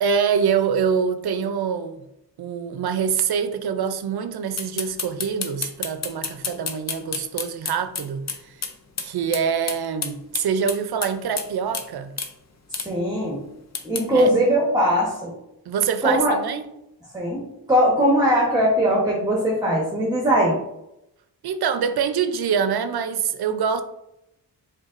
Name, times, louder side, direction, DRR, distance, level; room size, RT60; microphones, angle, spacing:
voice 1, 0.0-2.0 2.4-8.6 9.0-12.1 14.1-14.3 15.7-16.6 21.4-23.8, right 7 dB, 75° right, 0.5 m, -25 dB
sound 1, 4.6-8.7 9.0-9.1 9.3-9.4 9.7-11.5 11.7-11.9 12.2-12.3 12.7-12.9 13.8-14.1, left 5 dB, 45° left, 0.6 m, -29 dB
voice 2, 12.7-13.4 13.8-15.3 16.0-16.4 17.1-20.6, equal, 10° right, 1.0 m, -20 dB
5.2 x 3.6 x 2.5 m
wide cardioid pair, 115°, 38 cm